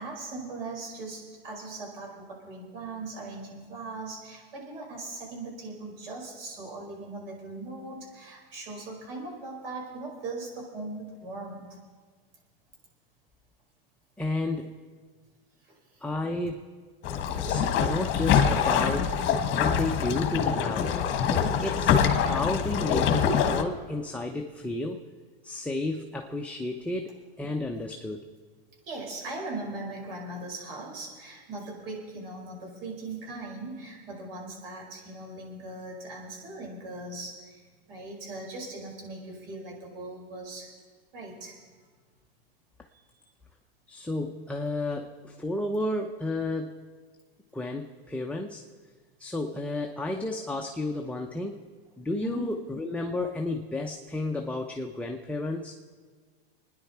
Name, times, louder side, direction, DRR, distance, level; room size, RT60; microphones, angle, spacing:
voice 1, 0.0-11.8 15.6-16.0 28.9-40.7 41.1-41.6 52.2-52.5, right 2 dB, 70° right, -1 dB, 5.2 m, -39 dB
voice 2, 14.2-14.7 16.0-16.7 17.3-19.2 19.5-21.0 21.6-25.0 25.4-28.2 43.9-46.8 47.5-48.6 49.2-51.6 52.0-55.7, left 2 dB, 5° left, 2 dB, 0.7 m, -32 dB
sound 1, 17.0-23.6, left 7 dB, 40° left, 1.5 m, -25 dB
25.0 x 10.0 x 4.4 m, 1.5 s
hypercardioid pair, 115°, 30 cm